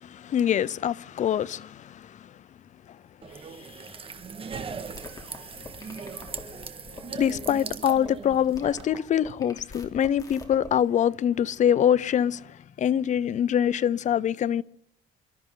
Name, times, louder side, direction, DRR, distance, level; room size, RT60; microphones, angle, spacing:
voice 1, 0.0-2.3 3.6-3.9 7.1-14.6, left 9 dB, 45° left, 0.6 m, -25 dB
sound 1, 3.2-8.8, right 5 dB, 35° right, 1.7 m, -39 dB
sound 2, 4.9-10.7, left 3 dB, 20° left, 3.1 m, -45 dB
28.0 x 13.0 x 3.9 m
cardioid pair, 110°, 17 cm